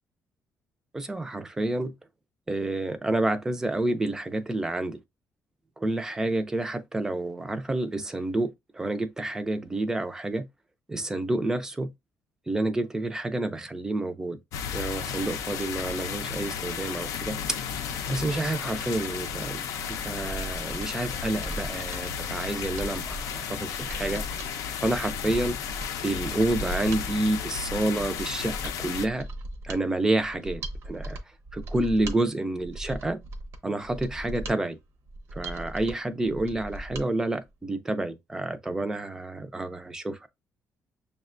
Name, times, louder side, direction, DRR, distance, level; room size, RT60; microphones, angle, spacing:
voice 1, 0.9-1.9 2.5-5.0 5.8-10.5 10.9-11.9 12.5-14.4 14.7-17.6 18.1-19.6 19.9-24.2 24.8-25.6 26.0-29.3 29.6-31.2 31.5-33.2 33.6-34.8 35.3-40.3, right 2 dB, 10° right, 0.4 m, -29 dB
sound 1, 14.5-29.1, left 7 dB, 85° left, 0.5 m, -34 dB
Mechanisms, 20.0-37.1 37.4-37.5, right 1 dB, 55° right, 0.7 m, -39 dB
6.4 x 2.1 x 2.4 m
cardioid pair, 175°, 5 cm